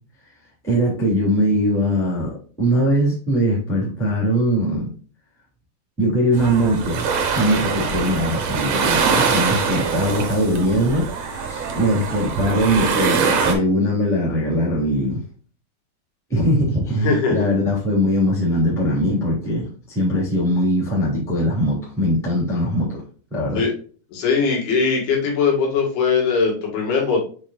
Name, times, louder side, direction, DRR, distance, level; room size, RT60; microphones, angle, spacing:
voice 1, 0.6-4.9 6.0-7.1 7.3-15.2 16.3-23.0 23.3-23.6, equal, ahead, 2.2 m, -21 dB
sound 1, 6.3-13.5, right 5 dB, 70° right, 1.7 m, -23 dB
voice 2, 17.0-17.5 23.5-23.7 24.1-27.2, left 5 dB, 70° left, 3.9 m, -20 dB
7.5 x 5.0 x 2.5 m
omnidirectional pair, 4.8 m